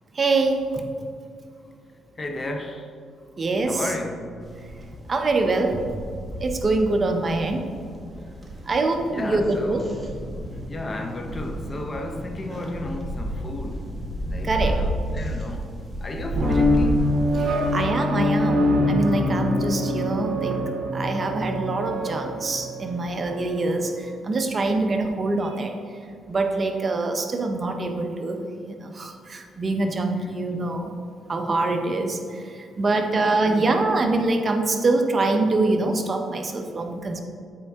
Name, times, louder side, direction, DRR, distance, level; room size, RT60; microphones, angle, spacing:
voice 1, 0.2-0.8 3.4-3.8 5.1-5.8 6.4-7.6 8.7-9.8 14.4-14.8 17.7-20.6 20.9-23.9 24.2-25.7 26.3-28.4 28.8-30.9 31.3-32.2 32.8-37.2, right 2 dB, 35° right, 0.7 m, -24 dB
voice 2, 2.2-2.9 3.7-4.5 9.1-10.1 10.5-14.0 14.3-17.1 30.2-30.3 33.1-33.9 36.5-36.6, left 2 dB, 30° left, 0.7 m, -33 dB
sound 1, 4.4-17.8, equal, 20° right, 1.1 m, -32 dB
sound 2, 16.4-23.7, left 1 dB, 65° right, 0.8 m, -24 dB
8.4 x 4.4 x 3.5 m
cardioid pair, 90°, 0 cm